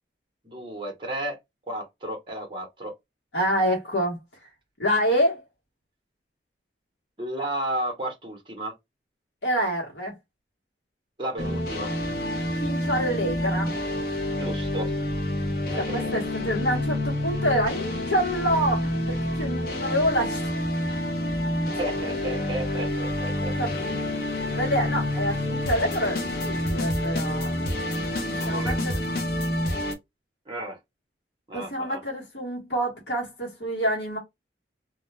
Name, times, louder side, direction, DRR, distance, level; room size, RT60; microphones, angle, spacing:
voice 1, 0.4-1.4 1.7-2.9 7.2-8.7 11.2-11.9 14.4-14.9 15.7-16.2 21.8-23.5 28.4-28.8 30.5-30.8 31.5-32.0, right 1 dB, 25° right, 0.7 m, -33 dB
voice 2, 3.3-4.2 4.8-5.4 9.4-10.1 12.5-13.7 15.8-20.5 22.0-22.2 23.3-24.0 24.5-27.8 28.3-29.0 31.5-34.2, equal, 75° left, 1.1 m, -27 dB
sound 1, 11.4-29.9, left 1 dB, 50° left, 0.6 m, -28 dB
2.3 x 2.2 x 3.1 m
head